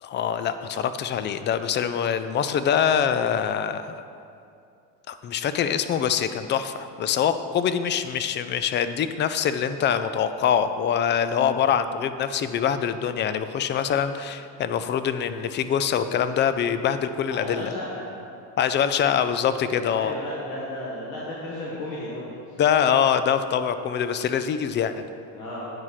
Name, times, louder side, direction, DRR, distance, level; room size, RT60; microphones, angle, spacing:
voice 1, 0.0-4.0 5.1-17.7 18.6-20.1 22.6-25.1, left 8 dB, 25° left, 11 dB, 0.3 m, -24 dB
voice 2, 17.3-18.1 19.9-22.6 25.3-25.7, left 1 dB, 50° left, -6 dB, 1.9 m, -34 dB
9.4 x 4.9 x 5.7 m, 2.5 s
supercardioid pair, 90°, 47 cm